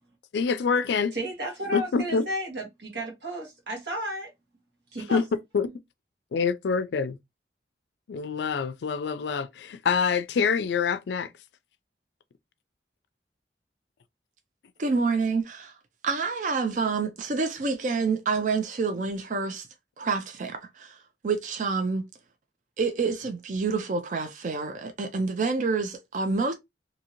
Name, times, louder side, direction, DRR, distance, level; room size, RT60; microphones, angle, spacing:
voice 1, 0.3-1.1 1.7-2.3 5.1-5.2 5.5-5.7 6.3-7.2 8.1-11.3, left 5 dB, 80° left, 0.4 m, -26 dB
voice 2, 1.1-4.3 4.9-5.2, right 1 dB, 80° right, 1.3 m, -33 dB
voice 3, 14.8-15.7 16.0-19.7 20.0-22.1 22.8-26.5, right 4 dB, 45° right, 0.4 m, -28 dB
2.7 x 2.7 x 2.8 m
head